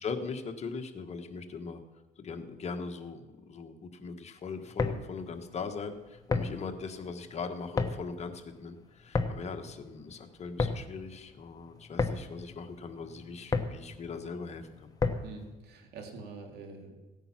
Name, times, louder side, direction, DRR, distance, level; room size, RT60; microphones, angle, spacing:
voice 1, 0.0-1.8 2.2-14.9, left 5 dB, 40° left, 6 dB, 1.4 m, -40 dB
sound 1, 4.6-15.5, left 3 dB, 20° left, 1.1 m, -34 dB
voice 2, 15.2-17.0, right 4 dB, 75° right, 3 dB, 2.8 m, -45 dB
16.5 x 9.0 x 6.0 m, 1.1 s
cardioid pair, 110°, 17 cm